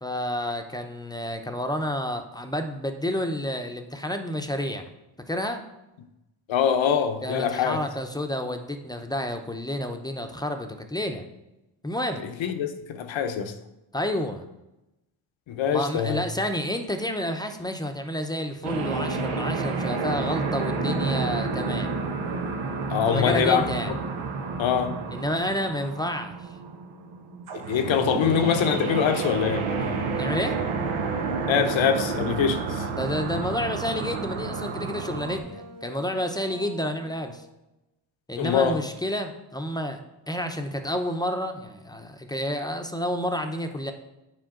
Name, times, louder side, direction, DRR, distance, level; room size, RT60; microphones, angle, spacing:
voice 1, 0.0-4.9 5.3-5.6 7.2-11.2 11.8-12.2 13.9-14.5 15.7-21.9 23.1-23.9 25.1-26.4 30.1-30.6 32.9-37.4 38.3-40.0 40.3-43.9, left 1 dB, 10° left, 5 dB, 0.7 m, -30 dB
voice 2, 6.5-7.8 12.2-13.5 15.5-16.2 22.9-23.7 24.6-24.9 27.7-29.9 31.5-32.9 38.4-38.8, left 7 dB, 70° left, 8 dB, 0.9 m, -24 dB
sound 1, 18.6-35.4, right 4 dB, 80° right, 1.0 m, -30 dB
sound 2, 28.7-37.4, right 1 dB, 60° right, 1.6 m, -45 dB
7.7 x 5.1 x 3.8 m, 0.95 s
cardioid pair, 75°, 47 cm